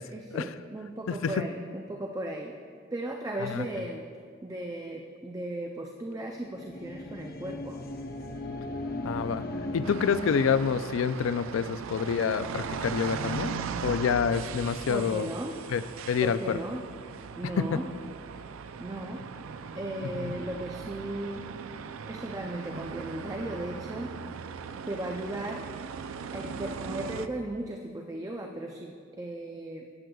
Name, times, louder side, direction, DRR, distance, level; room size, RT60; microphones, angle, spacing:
voice 1, 0.0-2.5 2.9-4.0 4.4-7.8 14.9-15.6 16.2-16.8 17.4-17.9 18.8-19.2 19.7-21.4 22.1-24.1 24.9-25.6 26.3-29.9, right 1 dB, 15° right, 2 dB, 0.4 m, -36 dB
sound 1, 6.2-10.9, left 1 dB, 50° left, 0.7 m, -37 dB
voice 2, 9.0-9.4 9.7-15.3 15.7-16.6 17.6-17.8 20.2-20.4, left 6 dB, 80° left, 13 dB, 0.4 m, -28 dB
sound 2, 9.8-27.3, right 6 dB, 90° right, 0.4 m, -39 dB
16.5 x 7.8 x 2.3 m, 2.1 s
head